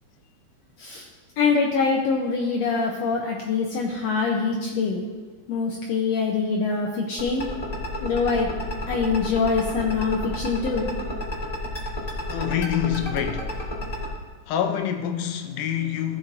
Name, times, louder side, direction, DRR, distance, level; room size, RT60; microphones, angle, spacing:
voice 1, 1.4-5.0 5.5-7.4 8.0-8.5 8.9-10.9, left 4 dB, 75° left, 1.7 m, -24 dB
sound 1, 7.2-14.1, left 1 dB, 30° left, 0.7 m, -30 dB
voice 2, 12.3-13.6 14.5-16.2, left 9 dB, 90° left, 2.3 m, -26 dB
15.0 x 7.4 x 2.6 m
omnidirectional pair, 3.6 m